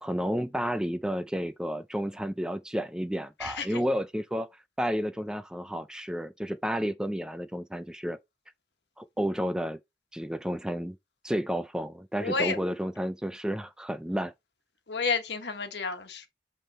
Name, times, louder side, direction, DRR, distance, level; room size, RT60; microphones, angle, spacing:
voice 1, 0.0-4.5 4.8-8.2 9.0-9.8 10.1-11.0 11.2-14.3, equal, 5° right, 0.4 m, -31 dB
voice 2, 3.4-3.8 12.2-12.6 14.9-16.3, left 4 dB, 80° left, 1.3 m, -31 dB
8.2 x 3.6 x 4.2 m
head